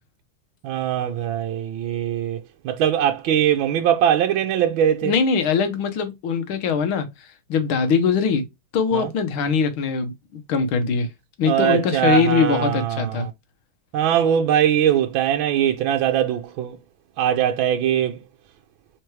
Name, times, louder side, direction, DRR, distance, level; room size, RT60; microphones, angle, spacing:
voice 1, 0.6-5.1 8.9-9.1 11.4-13.3 13.9-16.8 17.2-18.2, right 10 dB, 80° right, 1.4 m, -21 dB
voice 2, 5.0-7.1 7.5-8.4 8.7-11.1 11.4-13.3, left 5 dB, 85° left, 1.9 m, -22 dB
4.6 x 4.4 x 4.6 m
omnidirectional pair, 2.2 m